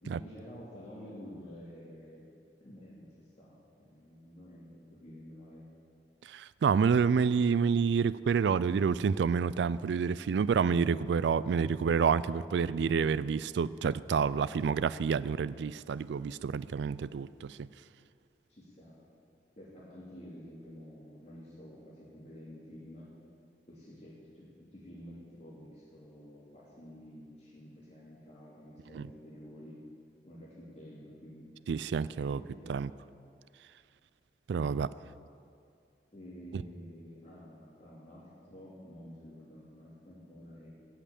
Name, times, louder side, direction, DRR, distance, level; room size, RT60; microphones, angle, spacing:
voice 1, 0.0-2.2 2.6-3.1 3.4-5.6 11.5-11.7 18.5-19.1 19.6-23.1 23.7-29.8 30.2-31.5 32.3-32.8 36.1-40.7, equal, 40° left, -7 dB, 2.6 m, -50 dB
voice 2, 6.3-17.7 28.9-29.1 31.7-32.4 32.7-32.9 34.5-34.9 36.5-36.6, right 6 dB, 70° right, 18 dB, 0.3 m, -28 dB
16.5 x 5.7 x 8.6 m, 2.4 s
head